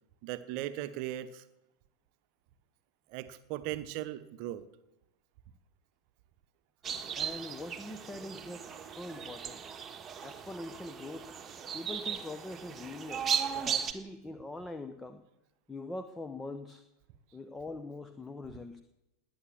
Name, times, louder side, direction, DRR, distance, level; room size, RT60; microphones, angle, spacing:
voice 1, 0.2-1.4 3.1-4.6, right 13 dB, 45° right, 12 dB, 1.0 m, -38 dB
sound 1, 6.8-13.9, right 7 dB, 20° right, 1.6 m, -37 dB
voice 2, 7.1-9.6 10.2-11.3 11.7-15.2 15.7-16.8 17.3-18.8, left 2 dB, 10° left, 9 dB, 1.0 m, -43 dB
19.5 x 9.5 x 7.3 m, 0.93 s
figure-of-eight pair, 90°, 0 cm